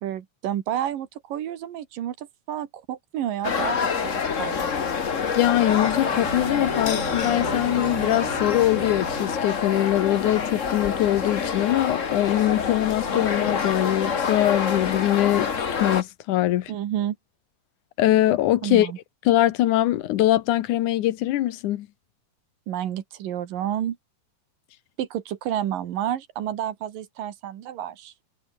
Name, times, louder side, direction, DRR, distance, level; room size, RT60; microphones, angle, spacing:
voice 1, 0.0-4.7 16.7-17.2 18.6-19.0 22.7-24.0 25.0-28.1, right 11 dB, 90° right, 3.4 m, -30 dB
sound 1, 3.4-16.0, left 6 dB, 55° left, 0.8 m, -27 dB
voice 2, 5.1-15.5 15.8-16.7 18.0-18.9 19.3-21.9, left 14 dB, 75° left, 2.4 m, -22 dB
Bowed string instrument, 5.6-10.6, right 11 dB, 70° right, 3.0 m, -38 dB
omnidirectional pair, 3.8 m